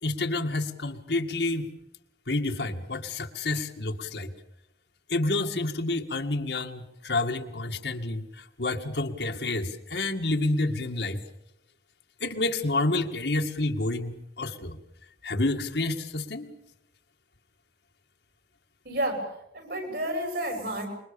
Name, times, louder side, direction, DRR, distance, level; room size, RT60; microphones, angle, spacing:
voice 1, 0.0-1.7 2.3-4.3 5.1-11.2 12.2-14.8 15.2-16.5, left 2 dB, 75° left, 4 dB, 2.0 m, -29 dB
voice 2, 18.8-19.2 19.5-20.9, right 1 dB, 65° right, 5 dB, 6.6 m, -30 dB
26.0 x 22.5 x 7.0 m, 0.82 s
head